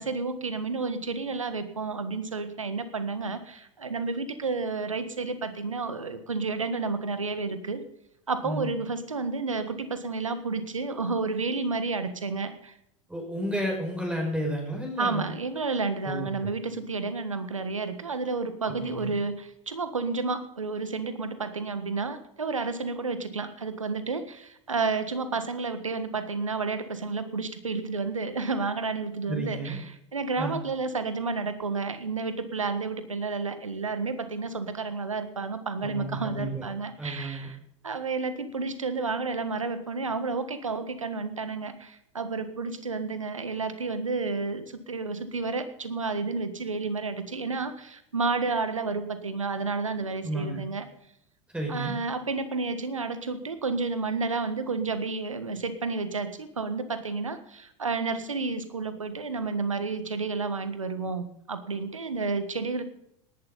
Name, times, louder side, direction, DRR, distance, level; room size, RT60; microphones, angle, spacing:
voice 1, 0.0-7.8 8.3-12.7 15.0-37.6 37.8-50.8 51.7-62.8, right 4 dB, 85° right, 11 dB, 1.5 m, -31 dB
voice 2, 13.1-15.3 16.0-16.5 18.6-19.2 29.3-29.8 30.4-30.6 35.8-36.7 37.0-37.5 50.2-50.7 51.5-51.9, right 1 dB, 5° right, 0 dB, 5.7 m, -32 dB
19.0 x 11.5 x 4.1 m, 0.76 s
figure-of-eight pair, 80°, 16 cm